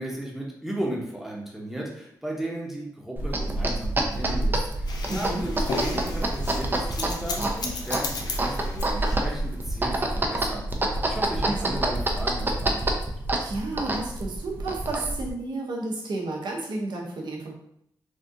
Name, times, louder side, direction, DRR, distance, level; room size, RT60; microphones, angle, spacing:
voice 1, 0.0-10.7 11.0-13.0, right 1 dB, 5° right, -3 dB, 0.9 m, -35 dB
sound 1, 3.2-15.3, right 1 dB, 30° right, 0.5 m, -27 dB
sound 2, 4.9-9.6, left 3 dB, 65° left, 0.6 m, -35 dB
voice 2, 5.1-5.4 11.4-11.8 13.3-17.5, right 2 dB, 80° right, -1 dB, 0.8 m, -32 dB
3.6 x 2.4 x 2.6 m, 0.73 s
cardioid pair, 85°, 7 cm